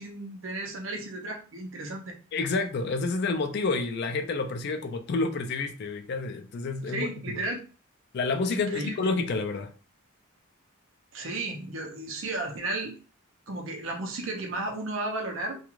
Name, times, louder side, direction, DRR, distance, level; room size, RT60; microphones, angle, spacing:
voice 1, 0.0-2.2 6.9-7.6 8.5-9.0 11.1-12.9 13.5-15.6, right 2 dB, 60° right, 3 dB, 0.6 m, -34 dB
voice 2, 2.3-7.4 8.1-9.7, left 3 dB, 50° left, 6 dB, 0.3 m, -29 dB
2.4 x 2.2 x 3.0 m, 0.36 s
head